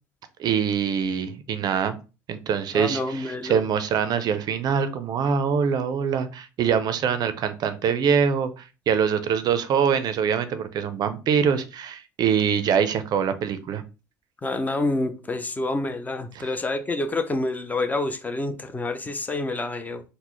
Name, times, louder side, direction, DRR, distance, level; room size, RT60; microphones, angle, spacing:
voice 1, 0.4-2.0 2.3-13.8 16.4-16.5, right 7 dB, 45° right, 0.5 m, -24 dB
voice 2, 2.7-3.6 14.4-20.0, left 2 dB, 15° left, 0.6 m, -28 dB
3.8 x 2.1 x 3.1 m
supercardioid pair, 90°, 10 cm